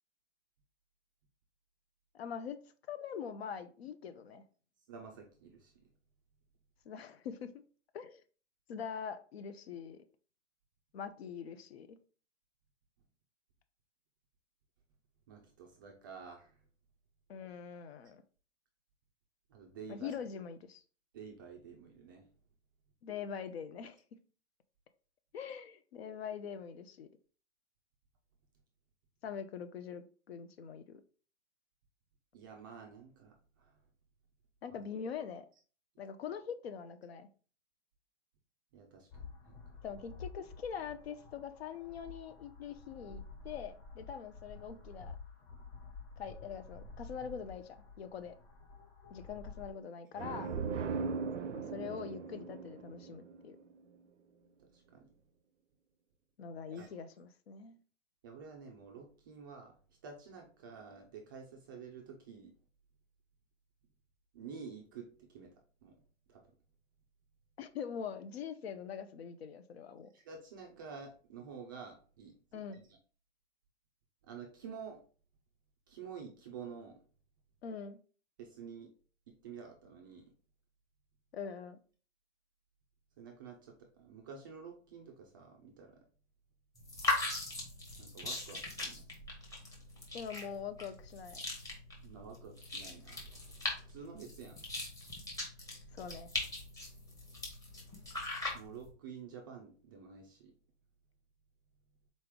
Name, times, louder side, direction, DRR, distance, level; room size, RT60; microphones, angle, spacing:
voice 1, 2.1-2.6 2.9-4.4 6.8-7.5 7.9-8.2 8.7-10.0 10.9-12.0 17.3-18.2 19.9-20.8 23.0-24.0 25.3-27.1 29.2-31.0 34.6-35.5 36.0-37.3 39.8-45.2 46.2-48.4 49.1-50.5 51.5-53.6 56.4-57.8 67.6-70.1 72.5-72.8 77.6-78.0 81.3-81.8 90.1-91.4 95.9-96.3, left 7 dB, 60° left, 0.6 m, -43 dB
voice 2, 4.9-5.8 15.3-16.6 19.5-20.2 21.1-22.3 32.3-33.8 34.7-34.8 38.7-39.8 54.7-55.1 56.7-56.9 58.2-59.7 60.0-62.6 64.3-65.5 65.8-66.0 66.3-66.4 70.1-72.4 72.7-72.8 74.2-75.0 75.9-77.0 78.4-78.9 79.3-80.3 83.2-86.0 88.0-89.1 92.0-93.3 93.9-94.6 96.3-96.4 98.5-100.5, right 6 dB, 20° right, 0.4 m, -50 dB
sound 1, 39.1-49.7, left 4 dB, 30° left, 1.4 m, -51 dB
sound 2, 50.2-53.8, right 5 dB, 80° right, 0.6 m, -39 dB
sound 3, 86.8-98.9, left 2 dB, 10° left, 0.9 m, -40 dB
4.0 x 3.2 x 3.6 m
hypercardioid pair, 140°, 36 cm